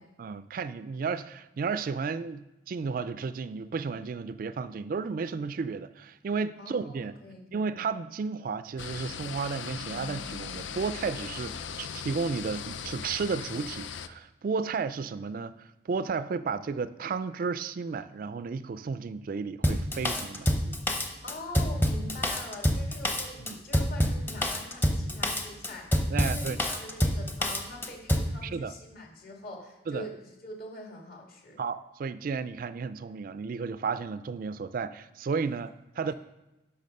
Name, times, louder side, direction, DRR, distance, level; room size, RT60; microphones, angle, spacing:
voice 1, 0.2-7.2 7.5-20.8 23.4-23.6 26.1-26.6 28.4-28.7 29.9-30.1 31.6-36.1, right 5 dB, 50° right, 14 dB, 0.3 m, -33 dB
voice 2, 6.6-7.7 21.2-31.6 36.0-36.1, left 1 dB, 50° left, 0 dB, 2.2 m, -44 dB
sound 1, 8.8-14.1, left 7 dB, 85° left, 0.5 m, -39 dB
Drum kit, 19.6-28.3, equal, 10° left, 0.8 m, -27 dB
10.5 x 5.9 x 5.3 m, 0.97 s
head